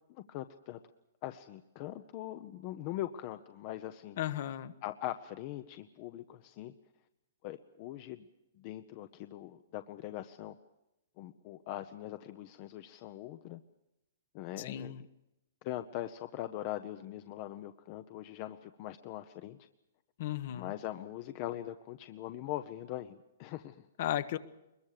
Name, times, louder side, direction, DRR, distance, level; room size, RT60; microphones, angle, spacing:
voice 1, 0.1-0.8 1.2-4.2 4.8-6.7 7.4-8.3 8.5-10.5 11.2-13.6 14.3-15.1 15.6-19.6 20.5-23.9, left 13 dB, 35° left, 10 dB, 0.8 m, -41 dB
voice 2, 4.2-4.7 14.6-15.0 20.2-20.7 24.0-24.4, left 12 dB, 50° left, 13 dB, 1.2 m, -35 dB
23.0 x 22.0 x 6.7 m, 0.90 s
hypercardioid pair, 160°, 0 cm